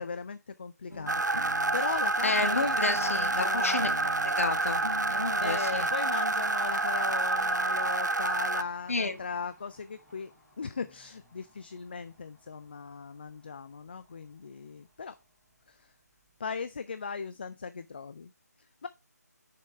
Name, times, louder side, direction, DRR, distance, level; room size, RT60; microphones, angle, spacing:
voice 1, 0.0-1.4 1.7-3.8 5.4-10.3 10.6-15.1 15.7-15.8 16.4-18.3 18.8-18.9, left 5 dB, 35° left, 0.4 m, -38 dB
sound 1, 0.9-5.5 6.3-6.4 6.7-6.8 7.0-7.1 7.3-8.0, left 1 dB, 75° left, 1.9 m, -44 dB
Domestic sounds home sounds, 1.0-16.8, right 1 dB, 5° right, 2.1 m, -53 dB
sound 2, 1.1-8.6, right 2 dB, 90° right, 0.4 m, -28 dB
voice 2, 2.2-3.9 4.2-4.8 5.1-5.9 8.9-9.2, left 3 dB, 50° left, 1.3 m, -30 dB
6.7 x 5.2 x 4.6 m
figure-of-eight pair, 155°, 9 cm